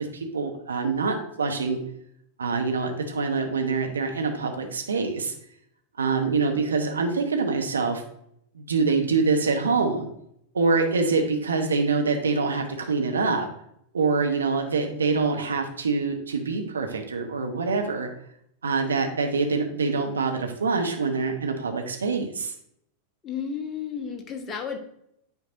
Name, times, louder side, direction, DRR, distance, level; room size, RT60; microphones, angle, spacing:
voice 1, 0.1-1.8 2.4-5.3 6.0-8.0 8.5-10.1 10.5-13.5 13.9-18.1 18.6-22.5, right 4 dB, 70° right, 4 dB, 0.9 m, -25 dB
voice 2, 23.2-24.8, left 7 dB, 25° left, 4 dB, 1.0 m, -32 dB
9.6 x 4.4 x 2.6 m, 0.72 s
figure-of-eight pair, 90°, 0 cm